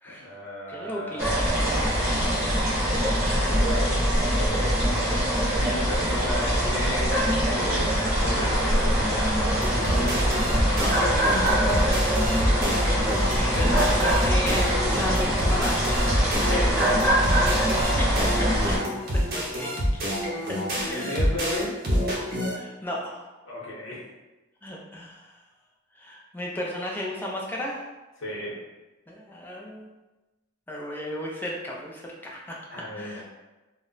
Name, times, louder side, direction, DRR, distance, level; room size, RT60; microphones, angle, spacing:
voice 1, 0.0-1.3 3.3-4.9 5.5-7.1 7.4-10.2 11.6-12.2 16.5-16.8 20.9-21.7 23.4-24.0 28.2-28.5 32.7-33.2, left 1 dB, 75° left, -5 dB, 0.8 m, -34 dB
voice 2, 0.7-2.3 2.6-3.4 10.7-11.5 12.9-15.9 17.5-18.7 19.1-19.7 20.5-21.1 22.5-23.2 24.6-25.3 26.0-27.8 29.1-29.9 30.7-32.6 33.0-33.2, left 1 dB, 10° left, -3 dB, 0.4 m, -35 dB
sound 1, 1.2-18.8, equal, 15° right, 1.0 m, -23 dB
sound 2, 9.6-22.5, equal, 50° right, 0.6 m, -28 dB
2.1 x 2.0 x 3.7 m, 1.1 s
head